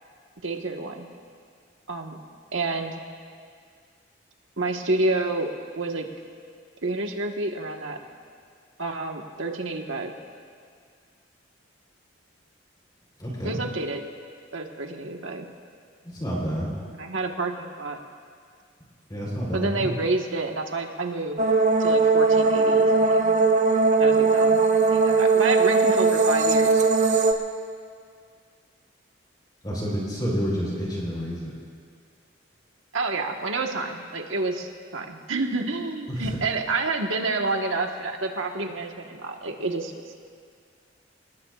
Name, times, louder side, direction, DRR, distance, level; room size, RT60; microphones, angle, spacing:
voice 1, 0.4-1.1 1.9-2.2 2.5-3.0 4.6-6.1 6.8-8.0 8.8-10.1 13.4-14.0 14.5-15.5 16.9-18.0 19.5-21.4 21.8-23.4 24.0-26.9 32.9-39.9, right 3 dB, 80° right, 3 dB, 1.4 m, -29 dB
voice 2, 13.2-13.6 16.0-16.7 19.1-19.9 29.6-31.5 36.1-36.4, equal, 20° left, -4 dB, 3.8 m, -29 dB
sound 1, 21.4-27.3, right 4 dB, 40° right, 0.9 m, -19 dB
29.0 x 19.0 x 2.4 m, 2.1 s
head